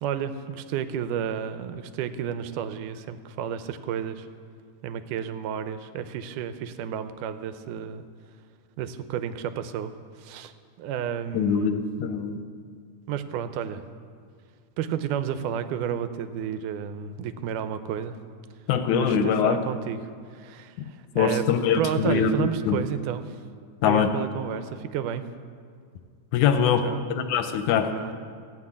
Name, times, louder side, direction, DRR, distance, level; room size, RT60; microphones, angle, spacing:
voice 1, 0.0-4.3 4.8-8.1 8.8-10.5 10.8-11.8 13.1-13.8 14.8-18.2 18.9-21.4 21.8-23.4 23.8-25.2 26.6-27.0 27.8-28.1, right 9 dB, 90° right, 11 dB, 2.2 m, -31 dB
voice 2, 11.3-12.4 18.7-19.6 20.8-22.8 23.8-24.1 26.3-26.8 27.1-27.9, left 7 dB, 80° left, 8 dB, 2.1 m, -23 dB
14.5 x 6.1 x 8.5 m, 2.1 s
omnidirectional pair, 3.6 m